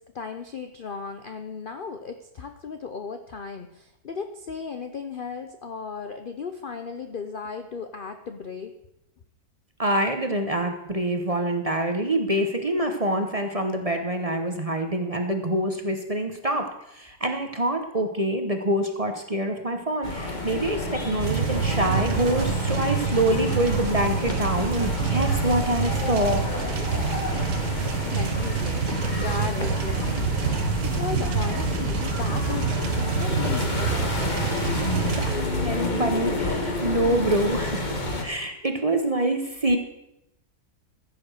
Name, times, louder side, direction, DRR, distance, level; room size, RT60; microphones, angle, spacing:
voice 1, 0.1-8.7 28.0-28.9 29.2-30.4 30.8-34.5, left 5 dB, 70° left, 7 dB, 0.5 m, -36 dB
voice 2, 9.8-26.4 35.1-38.0 38.2-39.8, right 1 dB, 25° right, 5 dB, 0.9 m, -26 dB
sound 1, 20.0-38.2, left 2 dB, 25° left, 1.5 m, -29 dB
sound 2, 21.2-35.4, right 7 dB, 60° right, 1.4 m, -28 dB
14.5 x 7.1 x 6.5 m, 0.86 s
omnidirectional pair, 1.9 m